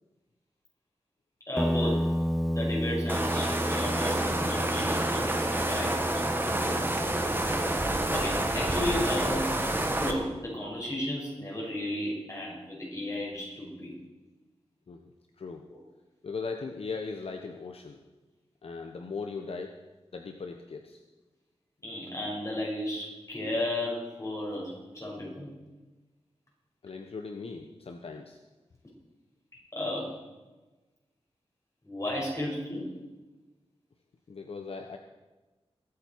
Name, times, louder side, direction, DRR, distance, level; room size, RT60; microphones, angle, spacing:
voice 1, 1.5-2.0 2.5-6.0 8.1-9.6 10.0-13.9 15.7-15.8 21.8-25.5 29.7-30.1 31.8-32.9, left 1 dB, 30° left, -3 dB, 5.9 m, -34 dB
Guitar, 1.6-9.4, equal, ahead, 0.5 m, -33 dB
sound 1, 3.1-10.1, right 1 dB, 20° right, 1.6 m, -28 dB
voice 2, 6.5-7.2 14.9-15.6 16.2-18.0 18.6-19.7 20.1-21.0 26.8-28.4 34.3-35.0, left 4 dB, 65° left, 4 dB, 1.0 m, -39 dB
23.0 x 8.7 x 4.6 m, 1.2 s
wide cardioid pair, 115°, 11 cm